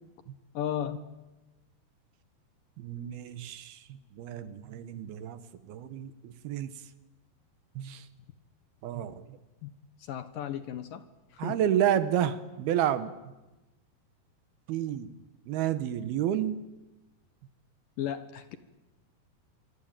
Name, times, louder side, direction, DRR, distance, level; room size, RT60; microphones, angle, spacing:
voice 1, 0.5-1.1 9.6-9.7 10.0-11.0 11.3-11.6 18.0-18.6, left 10 dB, 65° left, 11 dB, 2.5 m, -35 dB
voice 2, 2.8-6.7 7.8-8.1 8.8-9.4 11.4-13.1 14.7-15.1 15.5-16.6, right 10 dB, 70° right, 13 dB, 2.8 m, -30 dB
26.5 x 24.5 x 8.9 m, 1.1 s
omnidirectional pair, 4.8 m